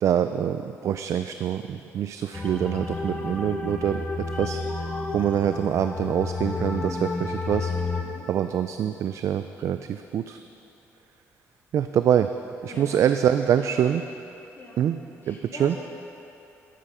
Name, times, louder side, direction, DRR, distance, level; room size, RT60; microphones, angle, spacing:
voice 1, 0.0-4.0 4.4-4.6 5.1-7.7 8.3-10.4 11.7-12.3 12.6-14.0 14.8-15.0 15.3-15.8, right 9 dB, 60° right, 9 dB, 0.3 m, -25 dB
sound 1, 2.3-8.0, left 3 dB, 20° left, 1.1 m, -31 dB
voice 2, 12.7-13.8 14.5-14.8 15.2-15.8, left 3 dB, 40° left, -3 dB, 2.2 m, -43 dB
12.5 x 8.6 x 5.6 m, 2.9 s
cardioid pair, 120°, 6 cm